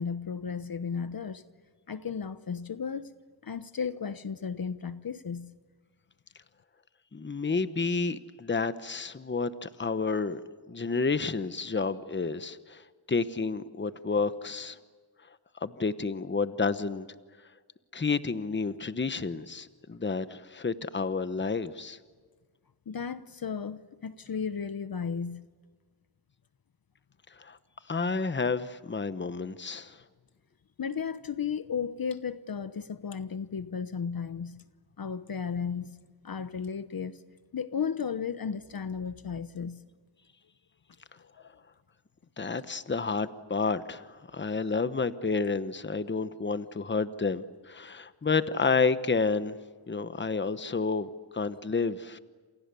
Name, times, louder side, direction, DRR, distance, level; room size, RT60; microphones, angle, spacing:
voice 1, 0.0-1.4 1.9-3.1 3.4-5.5 22.9-25.4 30.8-34.6 35.0-36.0 36.2-37.2 37.5-39.8 41.2-41.5, left 6 dB, 50° left, 1.0 m, -34 dB
voice 2, 7.1-10.4 10.7-12.8 13.1-14.8 15.6-17.1 17.9-22.0 27.4-27.6 27.9-30.0 42.4-49.6 49.9-52.2, left 4 dB, 25° left, 1.1 m, -30 dB
29.0 x 27.5 x 7.0 m
wide cardioid pair, 90°, 45 cm